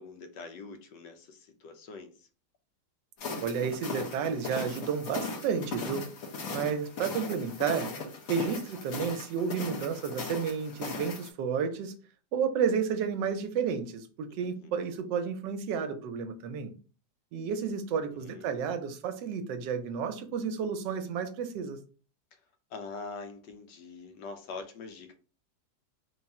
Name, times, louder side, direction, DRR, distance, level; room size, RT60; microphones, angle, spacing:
voice 1, 0.0-2.3 14.3-15.0 17.9-18.7 22.3-22.4 22.7-25.1, left 4 dB, 85° left, 1.3 m, -44 dB
sound 1, 3.2-11.3, left 3 dB, 55° left, 1.2 m, -38 dB
voice 2, 3.4-6.1 6.5-7.9 8.3-11.9 12.3-16.7 17.3-21.8, right 6 dB, 85° right, 1.2 m, -31 dB
3.5 x 2.4 x 4.1 m
omnidirectional pair, 1.9 m